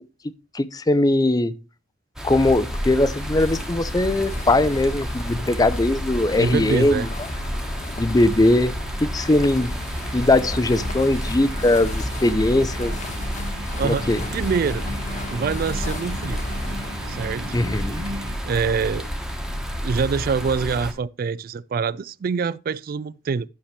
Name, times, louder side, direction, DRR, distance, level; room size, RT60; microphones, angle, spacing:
voice 1, 0.5-1.5 2.2-7.1 8.0-9.8 10.1-12.9 13.8-14.2 17.5-18.0, left 2 dB, 20° left, 0.5 m, -20 dB
sound 1, 2.2-20.9, equal, 5° right, 1.3 m, -31 dB
sound 2, 2.4-18.1, left 1 dB, 40° left, 1.1 m, -34 dB
voice 2, 6.4-7.1 13.8-14.9 15.3-16.4 17.1-17.4 18.4-19.1 19.8-23.5, right 5 dB, 50° right, 0.3 m, -25 dB
sound 3, 7.7-18.3, right 1 dB, 70° right, 1.3 m, -38 dB
11.5 x 6.6 x 3.2 m
head